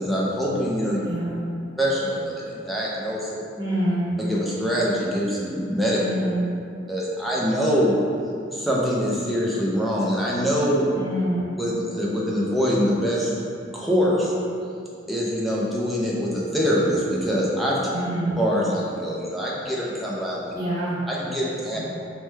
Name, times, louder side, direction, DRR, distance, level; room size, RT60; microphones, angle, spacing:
voice 1, 0.0-1.0 1.8-3.5 4.2-6.0 6.9-8.0 8.5-10.9 11.5-13.3 13.7-14.3 15.1-17.8 18.4-20.5 21.1-21.8, equal, ahead, -5 dB, 0.3 m, -24 dB
voice 2, 1.0-1.4 3.6-4.2 6.0-6.4 10.9-11.5 17.9-18.4 20.5-21.0 21.7-21.8, equal, 20° right, -12 dB, 0.8 m, -26 dB
3.1 x 2.1 x 3.2 m, 2.5 s
head